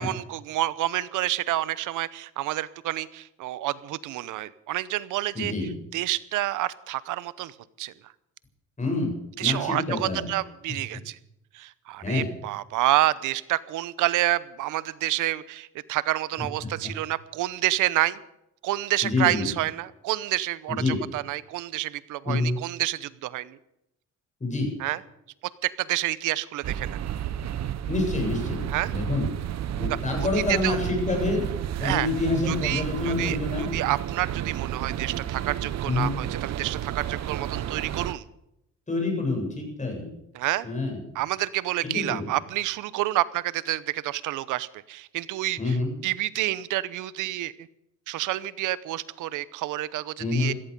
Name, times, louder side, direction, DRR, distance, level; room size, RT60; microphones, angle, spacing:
voice 1, 0.0-5.5 5.9-7.9 9.4-11.2 11.5-18.2 18.6-23.6 24.8-25.0 25.6-27.0 28.7-28.9 30.5-30.8 31.8-32.1 32.5-33.4 33.7-38.2 40.3-40.7 41.1-45.8 46.0-47.5 48.1-50.5, right 15 dB, 90° right, 18 dB, 0.8 m, -28 dB
voice 2, 5.3-5.7 8.8-9.1 9.4-10.3 12.0-12.3 16.8-16.9 19.0-19.5 20.7-21.0 22.2-22.6 24.4-24.7 27.9-28.6 28.9-29.3 29.8-31.5 31.8-33.7 35.8-36.1 38.9-40.1 40.6-41.0 41.8-42.3 45.6-46.0 50.2-50.6, left 3 dB, 25° left, 2 dB, 7.9 m, -27 dB
sound 1, 26.6-38.1, right 11 dB, 60° right, 0.8 m, -31 dB
17.5 x 14.0 x 5.3 m, 0.82 s
cardioid pair, 90°, 30 cm